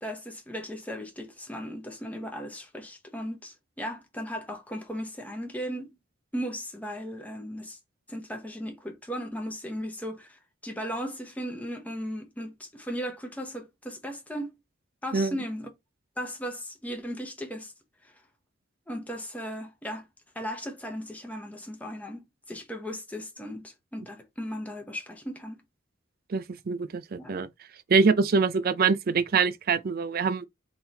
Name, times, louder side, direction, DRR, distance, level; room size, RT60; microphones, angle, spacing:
voice 1, 0.0-5.9 6.3-7.8 8.1-14.5 15.0-15.7 16.2-17.7 18.0-18.1 18.9-20.1 20.3-25.6 27.2-27.4, equal, 10° left, 0.9 m, -36 dB
voice 2, 26.3-27.5 27.9-30.5, right 5 dB, 50° right, 0.4 m, -24 dB
3.7 x 3.0 x 3.9 m
head